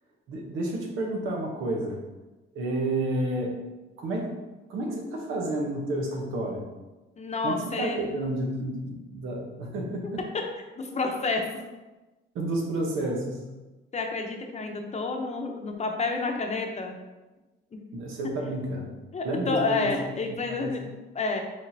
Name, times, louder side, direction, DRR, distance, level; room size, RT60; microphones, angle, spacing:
voice 1, 0.3-2.0 2.5-3.6 4.0-4.3 4.7-6.7 7.4-10.2 12.3-13.5 17.9-18.9 19.2-19.9 20.5-20.8, right 1 dB, 85° right, 0 dB, 1.0 m, -30 dB
voice 2, 7.2-8.1 10.8-11.5 13.9-16.9 19.1-20.9 21.1-21.4, left 3 dB, 35° left, 2 dB, 0.8 m, -29 dB
5.2 x 3.7 x 2.7 m, 1.1 s
cardioid pair, 90°, 20 cm